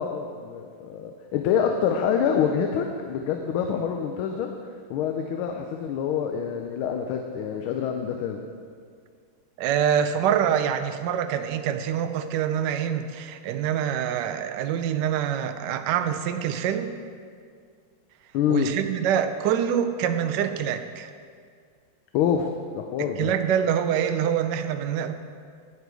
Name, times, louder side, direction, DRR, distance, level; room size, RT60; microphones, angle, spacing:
voice 1, 0.0-4.5 4.9-8.4 18.3-18.7 22.1-23.3, left 8 dB, 80° left, 4 dB, 1.4 m, -26 dB
voice 2, 9.6-17.0 18.5-21.1 23.0-25.1, right 9 dB, 70° right, 7 dB, 1.1 m, -25 dB
9.6 x 8.0 x 4.7 m, 2.1 s
omnidirectional pair, 2.3 m